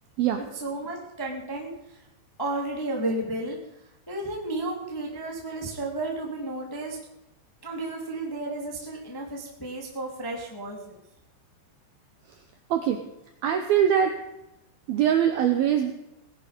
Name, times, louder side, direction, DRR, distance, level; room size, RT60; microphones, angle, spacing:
voice 1, 0.3-1.7 2.4-3.6 4.1-7.0 7.6-11.0, right 2 dB, 10° left, 0 dB, 1.1 m, -32 dB
voice 2, 12.7-13.0 13.4-14.2 14.9-15.9, right 9 dB, 75° right, 6 dB, 2.2 m, -22 dB
18.5 x 11.0 x 5.2 m, 0.89 s
omnidirectional pair, 5.5 m